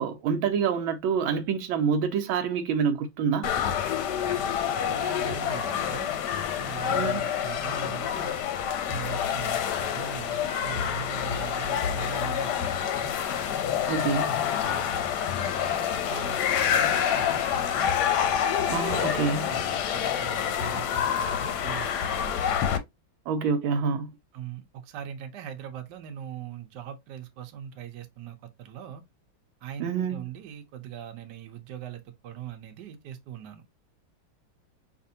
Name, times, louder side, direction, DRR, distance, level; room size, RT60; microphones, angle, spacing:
voice 1, 0.0-3.5 6.9-7.3 13.9-14.3 18.7-19.5 23.3-24.1 29.8-30.2, right 6 dB, 85° right, 1.4 m, -27 dB
sound 1, 3.4-22.8, left 8 dB, 70° left, 1.1 m, -27 dB
voice 2, 4.8-6.2 6.6-8.4 8.9-13.1 14.6-17.9 19.5-22.4 23.7-23.8 24.3-29.0 29.6-33.6, right 10 dB, 65° right, 1.3 m, -41 dB
4.9 x 2.6 x 2.7 m
omnidirectional pair, 2.2 m